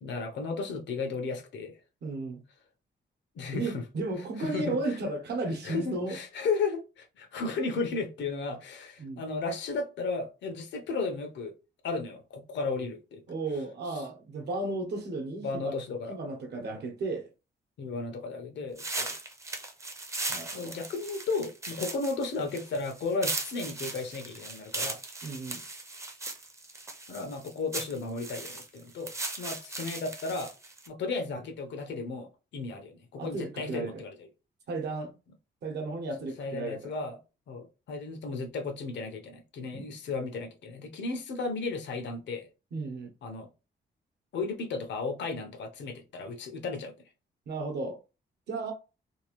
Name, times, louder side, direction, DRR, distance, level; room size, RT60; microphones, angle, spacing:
voice 1, 0.0-1.8 3.3-3.8 4.4-5.0 5.6-11.5 11.8-13.2 13.9-14.0 15.4-16.2 17.8-19.2 20.5-25.0 27.1-29.1 29.4-30.5 30.9-34.3 36.4-37.2 37.5-42.5 43.2-43.5 44.3-46.9, left 4 dB, 90° left, 0.8 m, -34 dB
voice 2, 2.0-2.4 3.5-6.2 9.0-9.3 13.3-15.7 16.1-17.3 20.3-20.7 25.2-25.6 33.2-34.0 34.7-35.1 35.6-36.9 39.7-39.9 42.7-43.1 47.5-48.0 48.5-48.7, right 2 dB, 70° right, 0.9 m, -34 dB
sound 1, 18.8-30.9, right 2 dB, 15° right, 0.5 m, -38 dB
2.9 x 2.4 x 3.0 m
wide cardioid pair, 165°, 18 cm